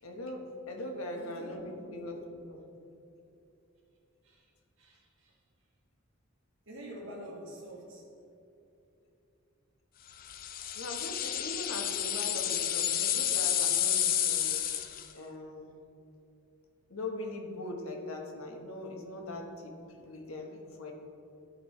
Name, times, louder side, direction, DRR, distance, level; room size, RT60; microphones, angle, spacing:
voice 1, 0.0-2.6 10.7-14.7 15.1-15.7 16.9-20.9, left 1 dB, 90° left, 2 dB, 1.2 m, -41 dB
voice 2, 1.2-2.1 4.2-4.5 4.8-5.4 6.7-8.0, right 1 dB, 65° right, -3 dB, 1.8 m, -47 dB
sound 1, 10.3-15.1, left 10 dB, 45° left, 0.5 m, -30 dB
13.0 x 5.4 x 3.2 m, 2.8 s
head